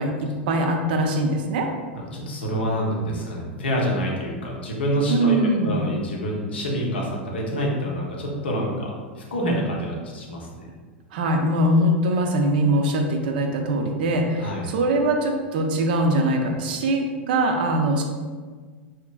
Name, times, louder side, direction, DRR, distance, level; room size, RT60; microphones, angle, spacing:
voice 1, 0.0-1.7 5.1-5.8 11.1-18.0, right 1 dB, 55° right, 3 dB, 0.4 m, -22 dB
voice 2, 1.9-10.7 14.4-14.6, equal, 70° left, -2 dB, 0.7 m, -27 dB
2.8 x 2.4 x 2.3 m, 1.5 s
figure-of-eight pair, 90°, 6 cm